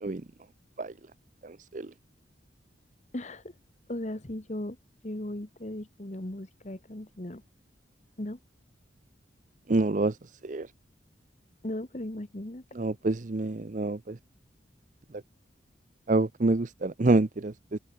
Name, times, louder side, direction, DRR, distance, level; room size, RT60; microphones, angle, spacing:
voice 1, 1.4-1.9 9.7-10.2 10.4-10.7 12.8-14.2 16.1-17.8, right 2 dB, 40° right, 0.6 m, -27 dB
voice 2, 3.1-3.5 3.9-4.8 5.0-7.4 8.2-8.4 11.6-12.6, left 1 dB, 40° left, 1.4 m, -37 dB
open air
head